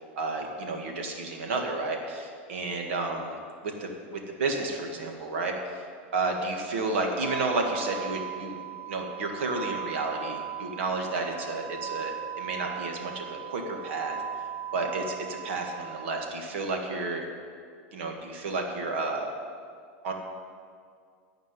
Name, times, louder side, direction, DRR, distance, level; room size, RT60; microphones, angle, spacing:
voice 1, 0.2-3.4 3.6-3.9 4.3-5.5 6.1-14.2 14.7-17.3 17.9-19.3 20.0-20.1, right 3 dB, 85° right, 2 dB, 1.9 m, -31 dB
sound 1, 7.2-16.3, right 9 dB, 35° right, 1.0 m, -38 dB
13.5 x 5.2 x 9.2 m, 2.2 s
supercardioid pair, 140°, 6 cm